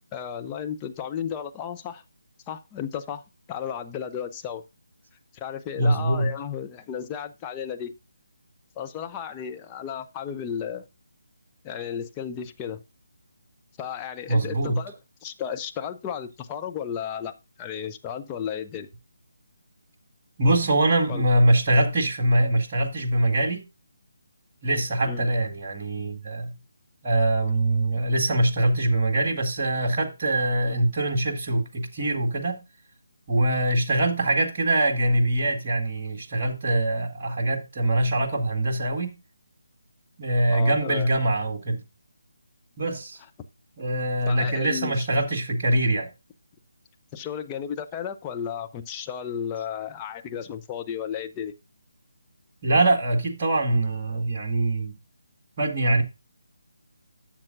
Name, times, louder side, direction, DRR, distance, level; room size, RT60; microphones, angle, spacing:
voice 1, 0.1-2.0 2.5-3.2 3.5-4.6 5.3-7.9 8.8-10.8 11.6-12.8 13.8-14.9 15.2-18.9 21.1-21.3 25.0-25.3 40.5-41.1 44.3-45.1 47.1-51.5, left 8 dB, 15° left, 0.7 m, -33 dB
voice 2, 5.8-6.3 14.3-14.8 20.4-23.6 24.6-26.6 27.0-32.6 33.3-39.1 40.2-41.8 42.8-43.2 43.8-46.1 52.6-54.9 55.6-56.0, right 1 dB, 30° right, 1.8 m, -23 dB
12.0 x 7.4 x 2.6 m
figure-of-eight pair, 150°, 0 cm